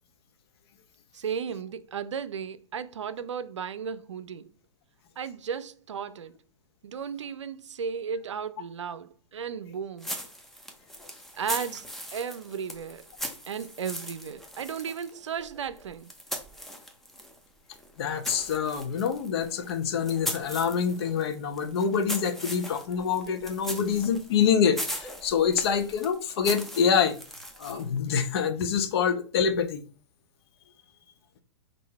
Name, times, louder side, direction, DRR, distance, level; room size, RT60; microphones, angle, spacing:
voice 1, 1.1-4.5 5.2-6.3 6.8-10.2 11.4-11.9 12.1-13.1 13.5-16.1, right 7 dB, 80° right, 0.5 m, -35 dB
sound 1, 10.0-17.4 17.7-28.0, equal, ahead, 0.6 m, -39 dB
voice 2, 18.0-27.2 27.6-29.8, left 7 dB, 55° left, 0.8 m, -26 dB
3.8 x 2.6 x 4.1 m
hypercardioid pair, 115°, 15 cm